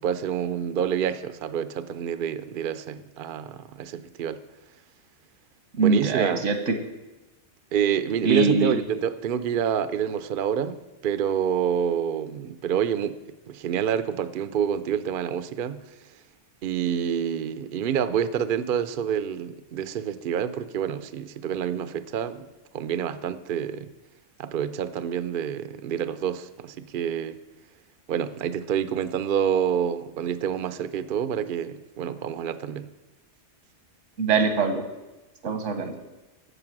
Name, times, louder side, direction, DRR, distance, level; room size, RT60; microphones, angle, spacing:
voice 1, 0.0-4.4 5.8-6.5 7.7-10.8 11.0-13.2 13.5-15.8 16.6-22.5 22.7-23.9 24.4-27.4 28.1-32.9, right 8 dB, 55° right, 13 dB, 0.7 m, -27 dB
voice 2, 5.8-6.8 8.2-8.8 34.2-34.8 35.4-35.9, right 4 dB, 85° right, 7 dB, 1.5 m, -22 dB
15.0 x 5.6 x 6.0 m, 1.1 s
omnidirectional pair, 1.2 m